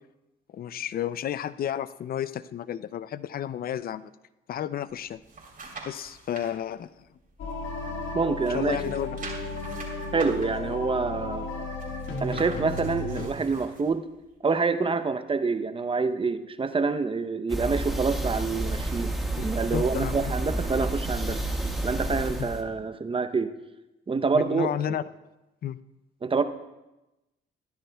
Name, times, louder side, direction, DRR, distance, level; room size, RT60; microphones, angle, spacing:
voice 1, 0.5-4.1 4.5-5.2 5.8-6.9 8.5-9.2 19.4-19.5 19.7-20.3 22.4-22.5 24.3-25.0 25.6-25.8, left 10 dB, 50° left, 16 dB, 0.5 m, -31 dB
sound 1, 4.9-6.5 7.0-8.1 8.4-13.9 14.4-14.5, right 3 dB, 45° right, 3.5 m, -44 dB
sound 2, 7.4-13.3, left 3 dB, 75° left, 1.7 m, -34 dB
voice 2, 8.1-8.9 10.1-11.5 12.2-14.0 14.4-19.1 19.4-21.4 21.8-23.5 24.1-24.7 26.2-26.4, right 4 dB, 25° right, 10 dB, 0.7 m, -27 dB
sound 3, 17.5-22.6, right 1 dB, ahead, 1.5 m, -30 dB
21.0 x 10.0 x 2.3 m, 0.98 s
cardioid pair, 90°, 20 cm